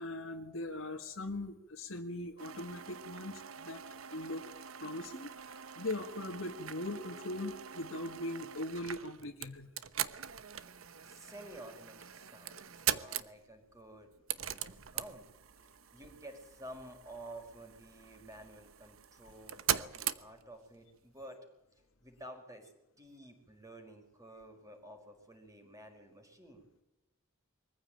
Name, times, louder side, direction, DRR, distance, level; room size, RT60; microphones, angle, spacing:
voice 1, 0.0-3.8 4.1-4.5 4.8-9.7, left 1 dB, 70° left, 3 dB, 1.8 m, -40 dB
sound 1, 2.4-20.8, right 10 dB, 80° right, 1.1 m, -42 dB
voice 2, 11.0-15.3 15.9-21.4 22.0-22.7 23.0-26.7, right 1 dB, 15° right, 4 dB, 5.0 m, -51 dB
23.5 x 15.0 x 9.0 m, 0.96 s
head